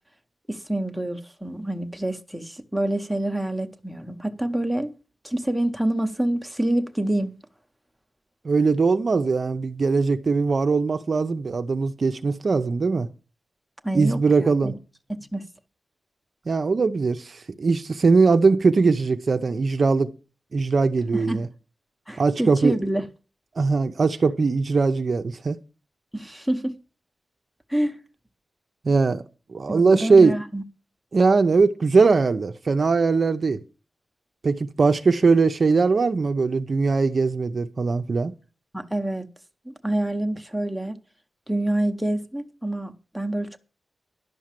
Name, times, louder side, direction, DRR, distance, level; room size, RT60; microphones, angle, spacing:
voice 1, 0.5-4.9 5.2-7.3 13.8-14.7 15.1-15.4 21.1-21.4 22.1-23.0 26.1-26.8 27.7-28.0 29.7-30.6 38.7-39.3 39.7-41.0 41.5-43.6, right 1 dB, ahead, 0.9 m, -27 dB
voice 2, 8.4-13.1 13.9-14.7 16.5-20.1 20.5-21.5 22.2-22.7 23.6-25.6 28.8-29.2 29.5-30.4 31.1-33.6 34.4-38.3, right 4 dB, 45° right, 0.6 m, -20 dB
11.0 x 6.3 x 7.4 m
wide cardioid pair, 155°, 0 cm